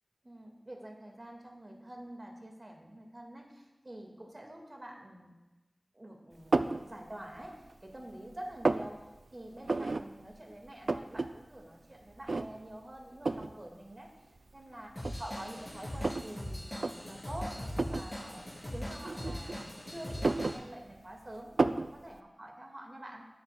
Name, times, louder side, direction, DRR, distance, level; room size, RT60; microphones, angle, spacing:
voice 1, 0.2-5.4 5.9-9.0 9.3-14.1 14.5-23.3, right 1 dB, 40° right, 1 dB, 1.8 m, -47 dB
sound 1, 6.5-6.8 7.4-8.0 8.3-8.9 9.7-10.0 10.4-10.5 10.7-11.3 11.6-11.7 12.3-12.7 13.3-13.5 14.4-14.5 15.0-16.3 16.7-16.9 17.7-18.1 19.0-19.7 20.1-21.1 21.6-21.9, right 3 dB, 85° right, 0.3 m, -31 dB
Drum kit / Drum, 15.0-20.6, equal, 25° left, 3.0 m, -40 dB
14.0 x 7.7 x 2.3 m, 1.1 s
wide cardioid pair, 55°, 0 cm